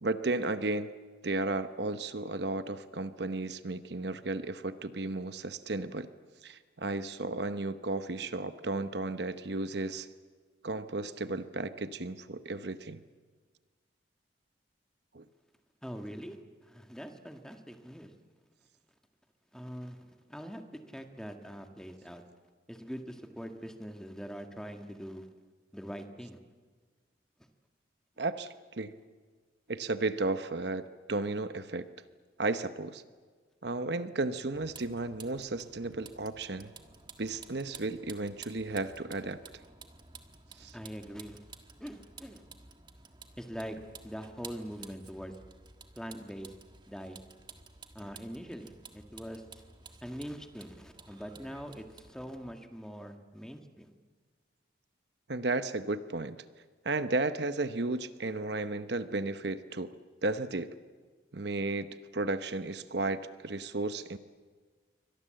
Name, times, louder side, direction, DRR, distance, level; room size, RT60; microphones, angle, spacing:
voice 1, 0.0-0.9 1.2-6.1 6.4-10.1 10.6-13.0 15.1-15.2 28.2-28.9 29.7-31.9 32.4-33.0 33.6-36.7 37.2-39.4 40.6-40.8 55.3-56.4 56.8-59.9 60.2-60.7 61.3-64.2, right 2 dB, 60° right, 11 dB, 0.9 m, -34 dB
voice 2, 15.8-18.1 19.5-22.2 22.7-25.3 25.7-26.4 40.7-41.4 41.8-42.4 43.4-43.8 44.0-45.3 46.0-46.5 46.9-47.2 47.9-49.4 50.0-53.9, equal, 5° left, 5 dB, 1.8 m, -43 dB
Vehicle, 34.5-52.5, right 4 dB, 25° right, 1.5 m, -53 dB
28.0 x 24.0 x 7.7 m, 1.5 s
head